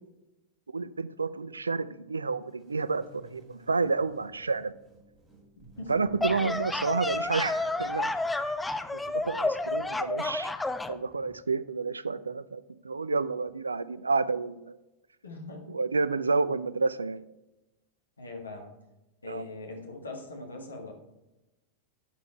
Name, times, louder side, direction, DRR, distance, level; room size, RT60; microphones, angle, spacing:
voice 1, 0.7-4.7 5.9-8.1 8.5-8.6 8.9-10.5 10.9-14.7 15.7-17.2 19.3-19.4, right 4 dB, 75° right, 16 dB, 0.3 m, -30 dB
sound 1, 2.5-9.3, equal, 20° right, 2.4 m, -56 dB
sound 2, 6.0-11.0, left 2 dB, 10° left, 0.5 m, -30 dB
voice 2, 15.2-15.7 18.2-18.7 19.2-20.9, left 2 dB, 75° left, 2 dB, 1.7 m, -41 dB
11.5 x 4.4 x 4.4 m, 0.98 s
figure-of-eight pair, 90°, 0 cm